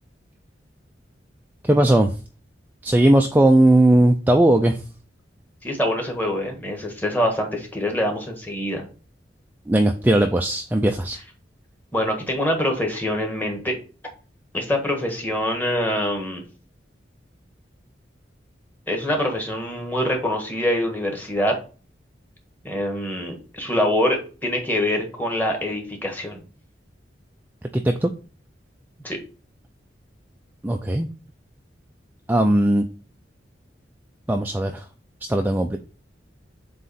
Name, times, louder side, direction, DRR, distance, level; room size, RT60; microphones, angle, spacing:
voice 1, 1.6-2.1 2.8-4.8 9.7-11.2 27.8-28.1 30.6-31.1 32.3-32.8 34.3-34.7 35.3-35.8, right 1 dB, 10° right, 4 dB, 0.4 m, -18 dB
voice 2, 5.6-8.8 11.9-13.8 14.5-16.4 18.9-21.6 22.6-26.4 29.0-29.2, left 1 dB, 10° left, 2 dB, 1.5 m, -24 dB
7.6 x 3.1 x 4.1 m, 0.36 s
head